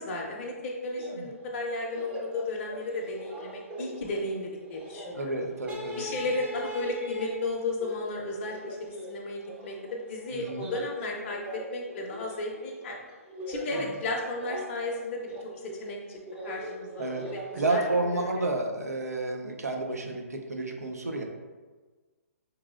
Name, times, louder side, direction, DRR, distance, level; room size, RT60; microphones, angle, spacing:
voice 1, 0.0-5.4 5.9-13.0 13.5-15.3 15.8-16.2 16.4-17.9 18.1-18.5, left 2 dB, 40° left, -2 dB, 0.5 m, -34 dB
sound 1, 0.9-1.2 1.5-1.6 1.8-18.2, equal, 15° right, 0.5 m, -40 dB
voice 2, 5.2-6.1 10.3-10.7 13.7-13.9 17.0-17.3 17.5-21.2, right 2 dB, 90° right, 3 dB, 0.5 m, -30 dB
3.7 x 3.0 x 2.4 m, 1.4 s
hypercardioid pair, 135°, 8 cm